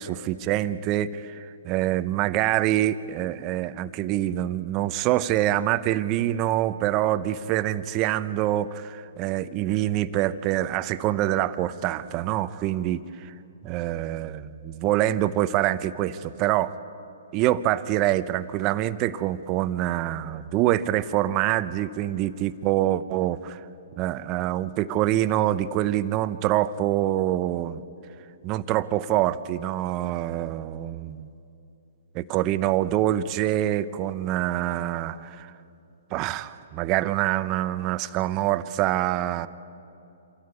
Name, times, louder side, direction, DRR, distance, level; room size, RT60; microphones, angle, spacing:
voice 1, 0.0-13.0 13.6-16.7 17.3-23.6 24.0-27.8 28.4-31.3 32.1-35.5 36.1-39.5, right 13 dB, 35° right, 14 dB, 0.7 m, -25 dB
26.0 x 14.0 x 9.5 m, 2.8 s
hypercardioid pair, 135°, 0 cm